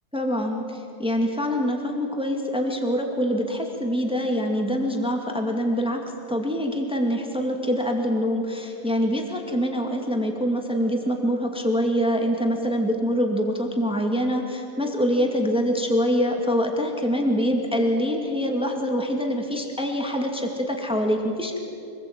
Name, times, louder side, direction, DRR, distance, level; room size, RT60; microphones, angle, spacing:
voice 1, 0.1-21.6, equal, 5° right, 2 dB, 2.3 m, -25 dB
26.0 x 20.0 x 8.9 m, 2.7 s
omnidirectional pair, 1.6 m